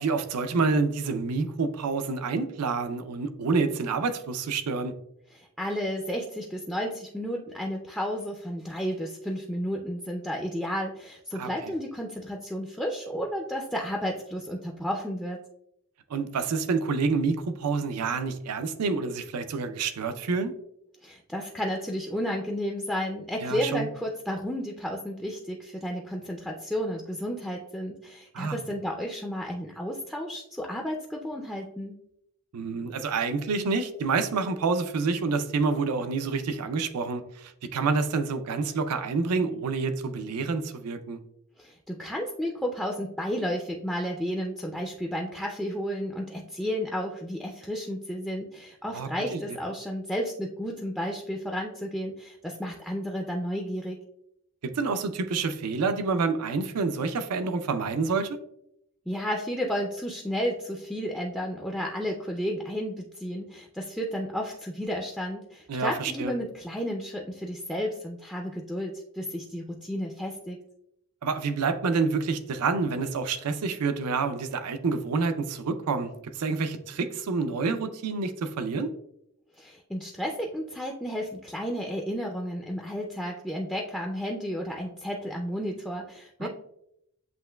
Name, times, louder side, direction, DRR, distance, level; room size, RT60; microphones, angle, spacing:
voice 1, 0.0-4.9 11.3-11.5 16.1-20.5 23.4-23.9 28.3-28.6 32.5-41.2 48.9-49.4 54.6-58.4 65.7-66.3 71.2-78.9 86.4-86.5, right 4 dB, 85° right, 9 dB, 0.5 m, -28 dB
voice 2, 5.3-15.4 21.0-32.0 41.6-54.0 59.1-70.6 79.6-86.5, equal, ahead, -1 dB, 0.4 m, -32 dB
7.7 x 3.0 x 2.2 m, 0.77 s
head